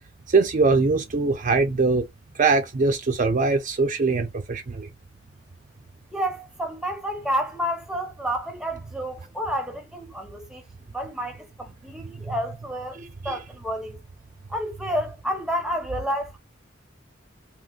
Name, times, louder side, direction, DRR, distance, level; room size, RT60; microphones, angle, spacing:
voice 1, 0.3-2.1 2.4-4.9 13.2-13.4, right 4 dB, 45° right, 0.5 m, -22 dB
voice 2, 6.1-10.6 10.9-13.0 13.2-14.0 14.5-16.4, equal, 5° right, 0.7 m, -30 dB
3.7 x 2.5 x 2.4 m
head